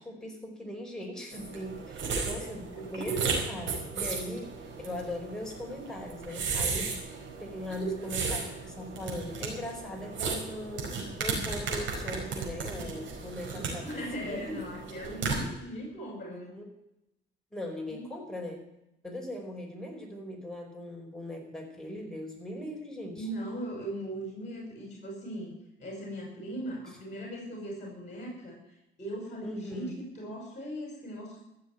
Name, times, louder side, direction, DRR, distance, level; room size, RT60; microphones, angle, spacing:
voice 1, 0.0-14.5 16.3-16.7 17.5-18.6 19.0-23.3 26.9-27.0 29.4-30.0, left 1 dB, 5° left, 0 dB, 4.9 m, -40 dB
sound 1, 1.3-15.4, right 4 dB, 75° right, 4.9 m, -35 dB
voice 2, 2.0-3.4 7.8-8.5 13.5-16.5 17.9-18.1 23.2-25.5 25.8-28.6 29.0-31.4, right 1 dB, 35° left, -1 dB, 5.4 m, -39 dB
14.5 x 7.1 x 9.2 m, 0.86 s
cardioid pair, 90°, 20 cm